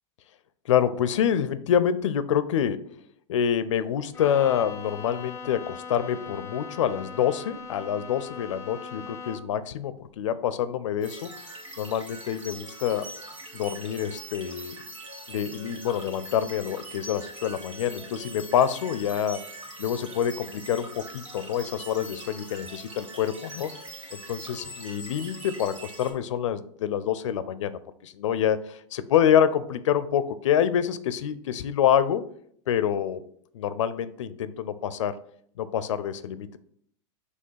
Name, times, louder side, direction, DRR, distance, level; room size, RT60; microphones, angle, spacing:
voice 1, 0.7-2.8 3.3-11.3 11.8-13.1 13.5-14.7 15.3-19.4 19.8-23.7 24.3-32.2 32.7-33.2 33.5-35.2 35.6-36.6, left 9 dB, 80° left, 15 dB, 0.5 m, -26 dB
Bowed string instrument, 4.1-9.7, left 5 dB, 15° left, 0.5 m, -40 dB
sound 1, 11.0-26.1, right 1 dB, 90° right, 2.0 m, -42 dB
5.4 x 3.2 x 5.6 m, 0.65 s
hypercardioid pair, 120°, 16 cm